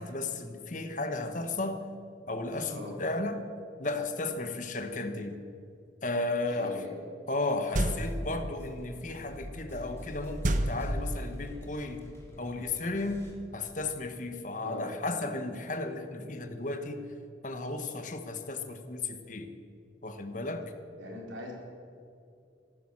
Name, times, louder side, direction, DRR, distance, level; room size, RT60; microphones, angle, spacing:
voice 1, 0.0-1.8 2.3-3.5 3.8-5.4 6.0-6.7 7.3-12.0 12.4-13.2 13.5-17.0 17.4-19.5 20.0-20.6, left 2 dB, 40° left, 8 dB, 1.2 m, -34 dB
voice 2, 6.5-7.0 14.6-14.9 21.0-21.5, left 1 dB, 90° right, -2 dB, 4.3 m, -41 dB
sound 1, 7.7-13.3, equal, 15° left, 2.4 m, -47 dB
sound 2, 7.7-8.4 10.4-11.5, right 1 dB, 40° right, 0.9 m, -29 dB
15.0 x 12.5 x 7.5 m, 2.5 s
head